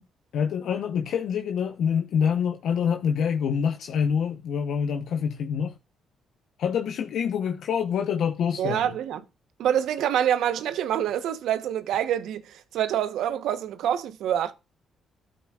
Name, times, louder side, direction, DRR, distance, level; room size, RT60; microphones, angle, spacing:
voice 1, 0.3-5.7 6.6-8.8, left 7 dB, 70° left, 0.8 m, -26 dB
voice 2, 8.6-9.2 9.6-14.5, right 10 dB, 80° right, 1.0 m, -26 dB
12.0 x 8.0 x 2.4 m
cardioid pair, 90°, 0 cm